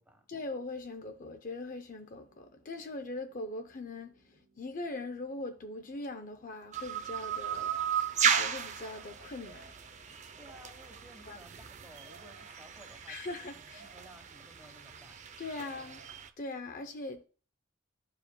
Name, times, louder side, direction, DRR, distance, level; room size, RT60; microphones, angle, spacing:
voice 1, 0.3-9.7 10.1-10.2 11.3-11.4 13.1-13.8 15.4-16.0 16.4-17.2, left 2 dB, 40° left, 0.5 m, -41 dB
sound 1, 2.1-12.1, right 4 dB, 90° right, 1.7 m, -71 dB
sound 2, 6.7-16.3, right 7 dB, 35° right, 0.5 m, -35 dB
voice 2, 10.4-15.3 15.6-15.9, right 1 dB, 10° right, 1.1 m, -57 dB
12.0 x 4.8 x 2.2 m
head